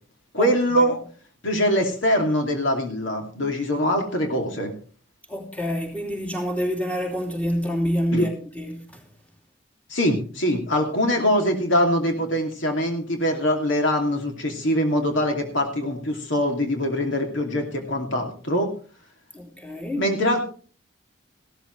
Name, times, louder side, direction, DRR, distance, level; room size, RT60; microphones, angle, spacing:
voice 1, 0.3-1.0 1.4-4.7 8.1-8.3 9.9-18.7 20.0-20.4, equal, 75° left, 2.7 m, -23 dB
voice 2, 5.3-9.0 19.3-20.0, equal, 10° left, 3.0 m, -27 dB
16.0 x 13.0 x 3.3 m
head